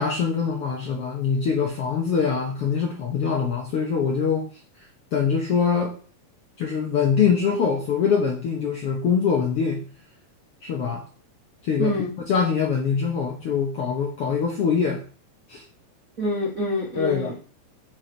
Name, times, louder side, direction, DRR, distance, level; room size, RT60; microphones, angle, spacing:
voice 1, 0.0-4.5 5.1-5.9 6.6-9.8 10.6-11.0 11.6-12.0 12.3-15.0 15.5-15.6 17.0-17.3, left 6 dB, 65° left, 1.5 m, -23 dB
voice 2, 11.8-12.1 16.2-17.3, left 1 dB, 45° right, 1.1 m, -26 dB
6.9 x 4.6 x 4.5 m
omnidirectional pair, 4.0 m